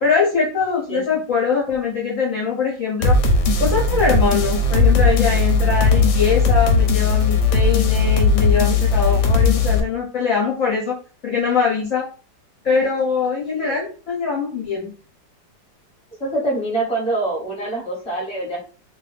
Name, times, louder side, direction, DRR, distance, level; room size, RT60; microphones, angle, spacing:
voice 1, 0.0-3.2 3.6-11.0 11.2-12.0 12.6-14.9, left 5 dB, 60° left, -4 dB, 0.9 m, -22 dB
sound 1, 3.0-9.8, left 3 dB, 75° left, 1.1 m, -17 dB
voice 2, 16.2-18.6, right 2 dB, 5° left, -4 dB, 0.9 m, -24 dB
2.8 x 2.5 x 3.3 m, 0.39 s
omnidirectional pair, 2.1 m